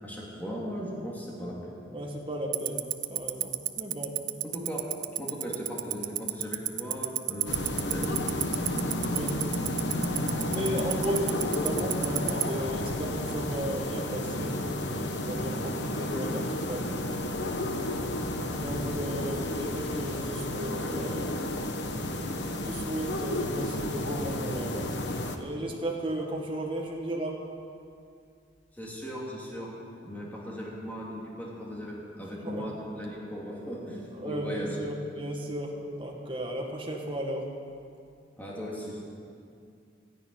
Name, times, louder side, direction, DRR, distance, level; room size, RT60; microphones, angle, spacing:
voice 1, 0.0-1.8 4.5-4.8 5.1-8.2 28.7-29.7 30.0-34.8 38.4-39.1, equal, 10° left, -5 dB, 2.8 m, -37 dB
voice 2, 1.9-4.2 9.1-9.8 10.5-14.6 14.9-17.0 18.6-21.4 22.6-24.9 25.3-27.4 32.4-32.6 34.1-37.5, right 1 dB, 25° right, 0 dB, 2.0 m, -35 dB
Tick-tock, 2.5-12.4, right 18 dB, 80° right, 0.7 m, -27 dB
sound 1, 7.5-25.4, left 1 dB, 65° left, 1.2 m, -32 dB
13.5 x 10.5 x 9.8 m, 2.4 s
head